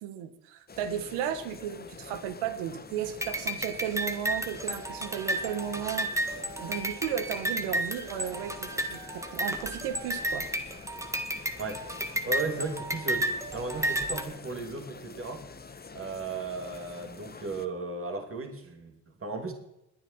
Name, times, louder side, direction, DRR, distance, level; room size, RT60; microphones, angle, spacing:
voice 1, 0.0-10.5, right 9 dB, 85° right, 10 dB, 1.7 m, -35 dB
sound 1, 0.7-17.7, left 5 dB, 20° left, 1.0 m, -47 dB
sound 2, 3.2-14.2, right 1 dB, 5° right, 1.6 m, -32 dB
voice 2, 12.2-13.3 13.5-15.5 15.9-19.5, right 3 dB, 25° right, 4 dB, 2.7 m, -35 dB
21.5 x 9.3 x 4.4 m, 0.86 s
supercardioid pair, 85°, 49 cm